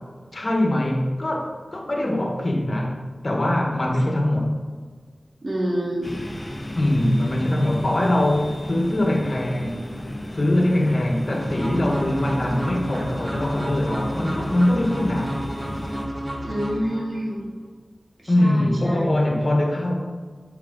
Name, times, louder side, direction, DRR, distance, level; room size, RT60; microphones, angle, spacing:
voice 1, 0.3-4.5 6.8-9.8 10.3-15.4 18.3-19.9, left 1 dB, 50° left, 1 dB, 1.4 m, -22 dB
voice 2, 5.4-6.2 16.4-17.5 18.2-19.1, equal, 55° right, -4 dB, 2.0 m, -27 dB
sound 1, 6.0-16.1, left 1 dB, 30° left, 1.0 m, -34 dB
sound 2, 11.4-17.4, equal, 30° right, 1.6 m, -32 dB
7.5 x 5.5 x 4.0 m, 1.5 s
wide cardioid pair, 55°, 0 cm